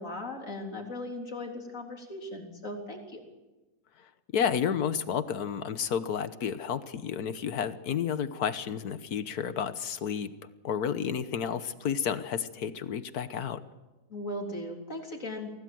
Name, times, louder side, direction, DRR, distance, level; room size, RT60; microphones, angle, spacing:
voice 1, 0.0-3.2 14.1-15.5, left 1 dB, 55° left, 1 dB, 4.0 m, -38 dB
voice 2, 4.3-10.3 10.6-13.6, left 7 dB, 75° left, 12 dB, 1.6 m, -31 dB
24.5 x 17.5 x 7.9 m, 1.1 s
omnidirectional pair, 1.6 m